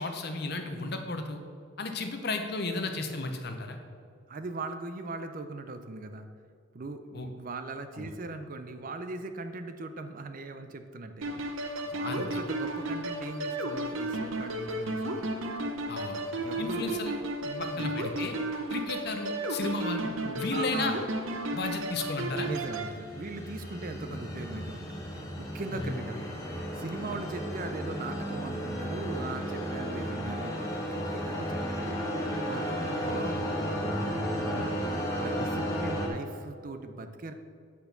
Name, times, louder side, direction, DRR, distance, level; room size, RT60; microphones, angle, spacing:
voice 1, 0.0-1.4 1.8-3.8 7.1-7.3 8.0-8.1 12.0-12.2 15.9-16.2 16.6-17.1 17.6-18.4 18.7-20.0 20.4-20.9 21.5-22.5 25.7-25.9, left 3 dB, 50° left, 5 dB, 0.8 m, -33 dB
voice 2, 4.3-6.3 6.7-11.4 11.8-15.3 16.4-16.9 17.4-18.0 20.0-21.0 22.4-26.3 26.7-34.7 35.1-37.3, right 3 dB, 40° right, 8 dB, 0.4 m, -40 dB
sound 1, 11.2-22.9, right 1 dB, 70° right, 0.7 m, -33 dB
sound 2, 22.3-36.1, equal, 15° left, 1.0 m, -34 dB
8.3 x 4.3 x 6.7 m, 2.3 s
head